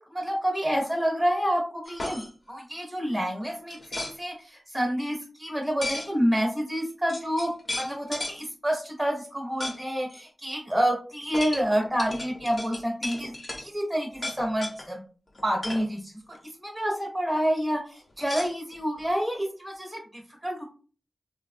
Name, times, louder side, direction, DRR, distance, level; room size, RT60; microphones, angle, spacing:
voice 1, 0.1-15.0 15.4-16.1 16.6-20.6, equal, 10° right, -1 dB, 0.8 m, -28 dB
sound 1, 1.9-2.3 3.7-4.1 5.8-6.1 6.8-6.9 7.1-8.4 9.6-9.8 10.1-10.2 11.3-13.7 14.1-14.9 15.4-15.9 18.2-19.1, left 1 dB, 45° left, 0.8 m, -35 dB
3.1 x 2.2 x 2.5 m, 0.38 s
wide cardioid pair, 60°, 0 cm